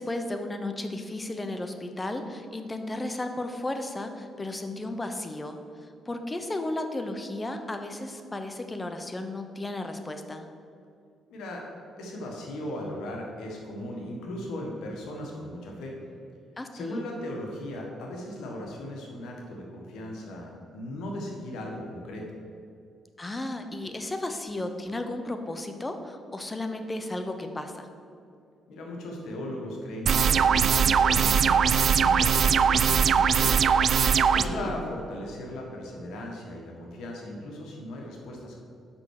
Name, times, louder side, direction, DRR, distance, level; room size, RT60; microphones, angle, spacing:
voice 1, 0.0-5.6 6.1-10.5 16.6-17.0 23.2-27.9 34.2-34.7, left 2 dB, 20° left, 6 dB, 0.8 m, -34 dB
voice 2, 11.3-11.6 12.0-16.0 16.7-22.4 28.7-33.6 34.3-38.6, left 1 dB, 80° left, -1 dB, 1.5 m, -37 dB
sound 1, 30.1-34.4, right 7 dB, 55° right, 0.3 m, -21 dB
6.2 x 5.7 x 6.5 m, 2.4 s
cardioid pair, 90°, 0 cm